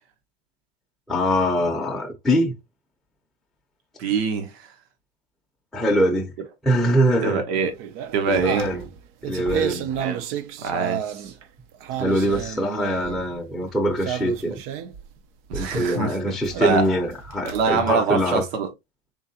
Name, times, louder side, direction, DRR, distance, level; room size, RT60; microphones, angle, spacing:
voice 1, 1.1-2.5 5.7-6.3 6.6-7.4 8.3-8.8 9.2-9.9 12.0-14.6 15.5-18.4, equal, ahead, 0.6 m, -23 dB
voice 2, 4.0-4.7 7.2-7.7 8.1-8.7 10.0-10.2 10.6-11.3 15.5-16.8 17.4-18.7, right 5 dB, 75° right, 1.2 m, -24 dB
sound 1, 7.5-11.4 11.7-13.3 14.0-15.1 15.5-15.9 16.4-17.8, right 9 dB, 45° right, 0.5 m, -31 dB
3.8 x 3.3 x 2.7 m
supercardioid pair, 140°, 31 cm